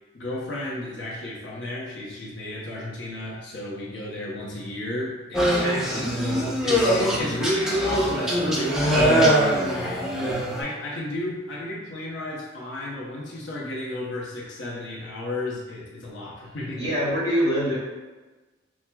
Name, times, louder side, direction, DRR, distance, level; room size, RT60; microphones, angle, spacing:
voice 1, 0.1-5.8 6.6-10.2 10.5-16.9, left 1 dB, 85° left, -4 dB, 0.7 m, -32 dB
sound 1, 5.3-10.6, equal, 5° right, 0.5 m, -22 dB
voice 2, 5.6-6.3 16.8-17.8, equal, 20° left, -8 dB, 1.3 m, -25 dB
5.8 x 2.1 x 2.2 m, 1.2 s
head